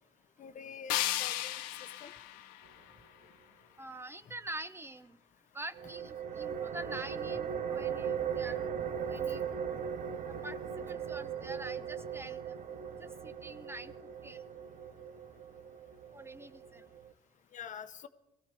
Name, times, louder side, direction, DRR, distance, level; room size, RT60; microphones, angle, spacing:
voice 1, 0.4-1.6 2.0-2.1 17.5-18.1, left 7 dB, 55° left, 1.0 m, -46 dB
sound 1, 0.9-3.9, left 14 dB, 80° left, 0.7 m, -36 dB
voice 2, 3.8-5.2 5.5-9.4 10.4-12.6 13.0-13.9 14.2-14.4 16.1-16.8, right 1 dB, 15° right, 0.8 m, -45 dB
sound 2, 5.7-17.1, right 7 dB, 55° right, 1.0 m, -38 dB
21.0 x 15.0 x 3.4 m
hypercardioid pair, 55°, 15 cm